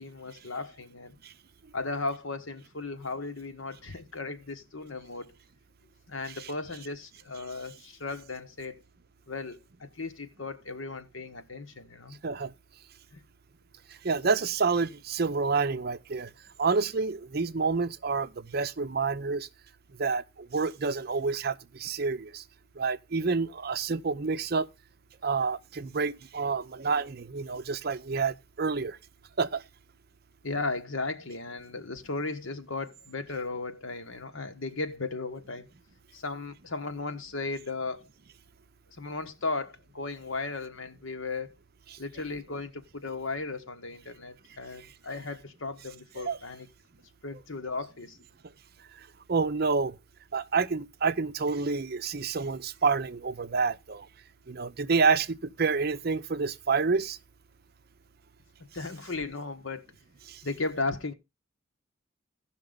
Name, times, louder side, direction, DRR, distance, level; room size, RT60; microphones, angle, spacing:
voice 1, 0.0-1.2 1.7-5.3 6.1-8.8 9.3-12.2 13.1-13.2 30.4-35.7 36.1-38.0 39.0-41.5 42.0-46.7 47.2-48.2 58.7-59.8 60.4-61.1, left 3 dB, 70° left, 1.3 m, -36 dB
voice 2, 14.0-16.3 16.6-19.5 20.0-22.4 22.8-24.7 25.2-29.0 29.4-29.6 46.2-46.4 49.0-50.0 50.3-54.1 54.5-57.2 60.3-60.4, right 4 dB, 50° right, 0.6 m, -28 dB
15.5 x 5.9 x 3.8 m
head